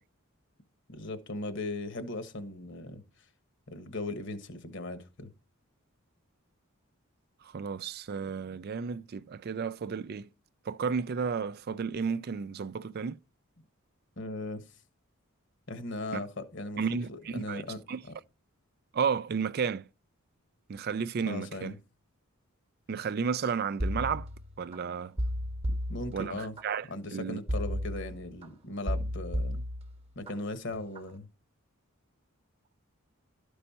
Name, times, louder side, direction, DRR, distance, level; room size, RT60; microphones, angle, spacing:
voice 1, 0.9-3.0 3.7-5.3 14.2-14.6 15.7-18.1 21.3-21.8 25.9-26.6 26.9-29.6 30.1-31.3, left 2 dB, 55° left, 1.3 m, -38 dB
voice 2, 7.4-10.3 10.7-13.2 16.1-16.2 16.8-17.6 17.9-18.0 18.9-19.9 20.7-21.8 22.9-24.3 24.6-25.2 26.1-27.4, right 6 dB, 45° right, 0.4 m, -32 dB
sound 1, 23.8-24.8 25.2-26.6 27.5-28.5 28.9-30.3 30.7-31.1, equal, 30° right, 1.0 m, -33 dB
12.5 x 5.4 x 4.2 m
head